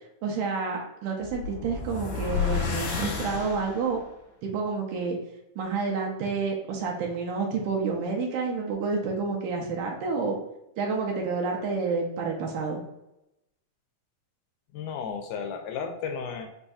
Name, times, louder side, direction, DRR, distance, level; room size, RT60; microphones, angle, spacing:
voice 1, 0.2-4.0 4.4-5.2 5.6-10.4 10.8-12.8, right 4 dB, 80° right, 0 dB, 2.1 m, -29 dB
sound 1, 1.2-4.0, left 6 dB, 60° left, 2.1 m, -31 dB
voice 2, 14.7-16.5, left 6 dB, 80° left, 4 dB, 1.9 m, -33 dB
5.2 x 2.6 x 2.3 m, 0.87 s
omnidirectional pair, 3.7 m